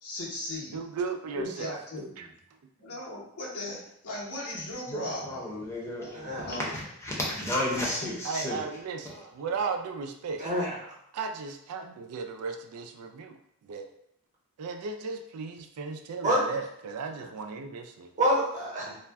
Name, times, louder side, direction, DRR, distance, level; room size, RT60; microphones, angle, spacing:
voice 1, 0.0-0.9 1.4-2.3 2.8-5.5 6.4-6.8 8.0-8.2, left 1 dB, 80° left, -5 dB, 1.0 m, -37 dB
voice 2, 0.7-2.3 2.9-3.0 8.2-10.4 11.1-13.4 13.6-13.9 14.6-18.1, right 5 dB, 85° right, 5 dB, 0.4 m, -36 dB
voice 3, 4.9-8.6 9.0-9.3, left 1 dB, 15° left, -4 dB, 0.7 m, -33 dB
voice 4, 6.1-6.5 10.4-10.9 16.2-16.6 18.2-19.0, right 1 dB, 35° right, -5 dB, 0.8 m, -27 dB
2.4 x 2.1 x 3.3 m, 0.73 s
head